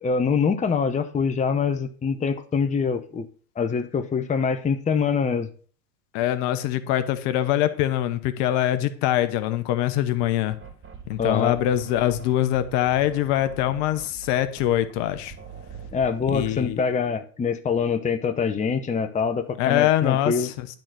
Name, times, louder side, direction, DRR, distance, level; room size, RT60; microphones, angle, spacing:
voice 1, 0.0-3.3 3.6-5.5 11.2-11.6 15.9-20.5, left 5 dB, 15° left, 0.8 m, -24 dB
voice 2, 6.1-10.6 11.1-15.3 16.3-16.8 19.6-20.7, left 12 dB, 55° left, 1.1 m, -23 dB
sound 1, 10.2-16.8, right 6 dB, 25° right, 2.4 m, -43 dB
10.5 x 4.0 x 6.1 m
hypercardioid pair, 80°, 49 cm